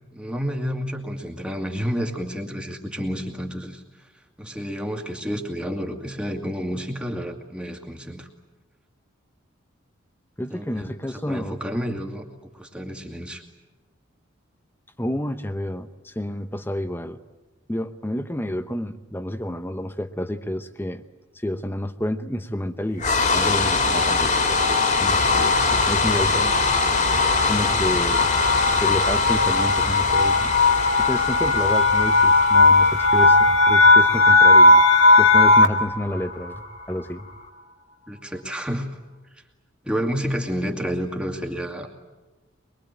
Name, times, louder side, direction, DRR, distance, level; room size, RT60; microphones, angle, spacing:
voice 1, 0.1-3.8 4.4-8.3 10.5-12.3 12.5-13.4 38.1-38.9 39.8-41.9, equal, 5° right, 3 dB, 2.2 m, -30 dB
voice 2, 10.4-11.6 15.0-17.2 17.7-21.0 21.3-26.6 27.5-28.3 28.8-30.5 31.0-34.8 35.2-37.3, left 1 dB, 10° left, 10 dB, 0.9 m, -29 dB
sound 1, 23.0-37.1, left 4 dB, 35° left, 2.5 m, -24 dB
sound 2, 23.8-35.9, left 2 dB, 70° left, 1.9 m, -18 dB
23.5 x 23.0 x 9.1 m, 1.1 s
head